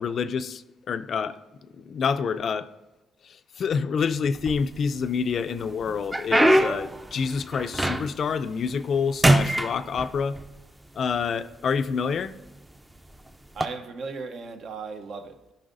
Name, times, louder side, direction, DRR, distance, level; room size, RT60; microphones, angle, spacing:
voice 1, 0.0-1.4 1.8-2.7 3.2-10.4 10.9-12.3, left 6 dB, 55° left, 0.4 m, -27 dB
sound 1, 4.4-5.1 5.6-8.3 8.7-9.0 9.2-10.5 11.3-11.4 12.1-12.3 13.5-13.7, right 1 dB, 15° right, 0.5 m, -23 dB
voice 2, 13.5-15.5, right 4 dB, 60° right, 0.7 m, -37 dB
13.5 x 5.4 x 2.5 m
cardioid pair, 90°, 0 cm